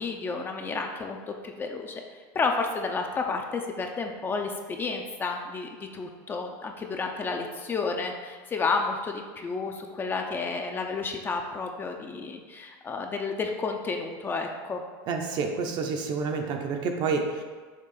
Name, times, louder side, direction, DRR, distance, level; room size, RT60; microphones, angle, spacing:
voice 1, 0.0-2.0 2.3-14.8, left 4 dB, 20° left, 3 dB, 0.5 m, -31 dB
voice 2, 15.1-17.4, right 4 dB, 45° right, 4 dB, 0.7 m, -29 dB
6.5 x 3.0 x 5.5 m, 1.5 s
supercardioid pair, 145°, 11 cm